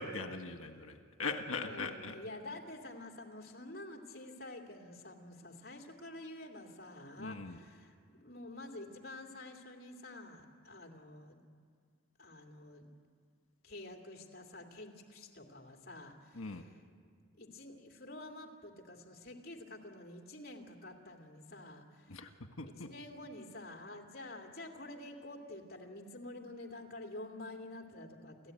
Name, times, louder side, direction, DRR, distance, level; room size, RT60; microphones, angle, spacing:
voice 1, 0.0-2.1 7.2-7.6 16.4-16.6 22.1-22.3 22.6-22.9, left 3 dB, 80° left, 6 dB, 1.5 m, -40 dB
voice 2, 1.6-11.4 12.2-12.9 13.6-16.8 17.4-22.3 22.8-28.5, left 2 dB, 45° left, 2 dB, 2.5 m, -49 dB
29.5 x 14.0 x 9.2 m, 2.1 s
head